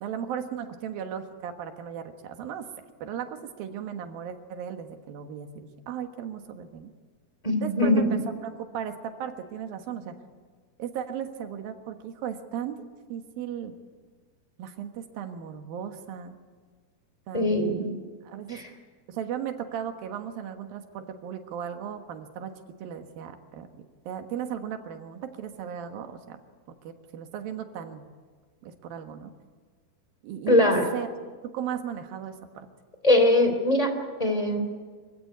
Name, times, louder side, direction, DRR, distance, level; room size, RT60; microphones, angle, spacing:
voice 1, 0.0-2.7 3.0-6.9 7.6-10.2 10.8-12.8 13.1-13.7 14.6-16.4 17.3-17.9 18.2-18.6 19.1-26.4 26.8-28.1 28.6-29.3 30.2-31.1 31.4-32.7, right 8 dB, 90° right, 6 dB, 3.3 m, -36 dB
voice 2, 7.4-8.2 17.3-18.0 18.5-18.6 30.5-30.9 33.0-33.9 34.2-34.7, left 1 dB, 10° left, 6 dB, 2.8 m, -22 dB
25.0 x 16.0 x 9.4 m, 1.5 s
omnidirectional pair, 4.0 m